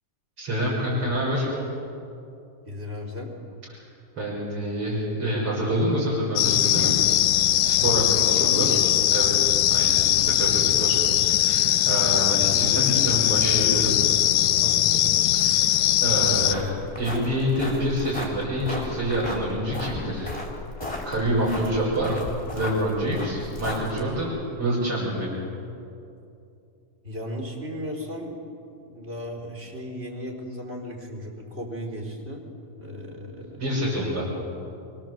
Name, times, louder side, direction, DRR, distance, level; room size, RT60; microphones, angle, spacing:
voice 1, 0.4-1.5 4.2-6.9 7.3-8.8 9.1-14.0 15.3-15.7 16.0-16.6 17.0-20.3 21.1-22.1 22.5-24.3 24.6-25.3 33.6-34.2, equal, 40° right, -6 dB, 6.9 m, -27 dB
voice 2, 2.7-3.3 7.8-9.0 14.6-15.1 27.0-28.4 28.8-32.4 32.8-33.6 34.0-34.4, left 1 dB, 20° right, 1 dB, 4.4 m, -35 dB
sound 1, 6.4-16.5, left 13 dB, 75° left, 2.1 m, -21 dB
sound 2, 16.3-24.2, left 2 dB, 10° left, 4.1 m, -35 dB
29.5 x 24.0 x 8.0 m, 2.7 s
omnidirectional pair, 3.7 m